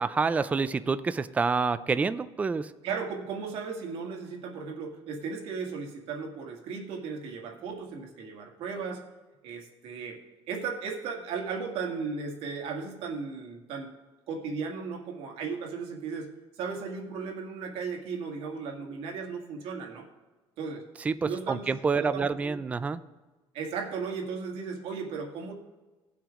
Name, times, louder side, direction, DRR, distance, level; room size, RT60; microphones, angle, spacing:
voice 1, 0.0-2.7 21.0-23.0, right 4 dB, 15° right, 13 dB, 0.3 m, -28 dB
voice 2, 2.8-9.1 9.4-10.2 10.5-13.9 14.3-16.3 16.6-20.1 20.6-20.9 21.2-21.6 22.0-22.6 23.5-25.5, right 5 dB, 75° right, 1 dB, 1.9 m, -36 dB
17.5 x 5.9 x 3.6 m, 1.2 s
cardioid pair, 145°, 10 cm